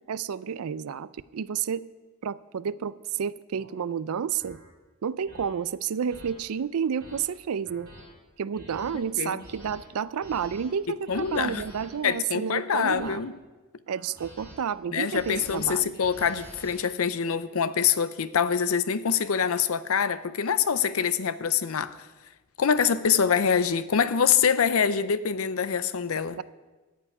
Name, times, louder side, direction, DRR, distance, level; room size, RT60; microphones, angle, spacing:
voice 1, 0.1-1.8 2.2-4.6 5.0-7.9 8.4-13.2 13.9-15.9 26.3-26.4, right 7 dB, 90° right, 0.4 m, -30 dB
sound 1, 2.7-2.9 3.5-3.7 4.4-4.6 5.3-5.4 6.1-6.3 6.8-7.2 7.7-8.0 8.5-8.9 9.4-9.8 10.2-10.6 11.1-11.9 12.5-13.2 13.9-14.5 14.9-16.7, equal, 45° right, 4.4 m, -47 dB
voice 2, 8.9-9.4 11.1-11.6 12.0-13.4 14.9-22.0 22.6-26.4, left 7 dB, 80° left, 0.6 m, -25 dB
13.5 x 5.6 x 9.5 m
head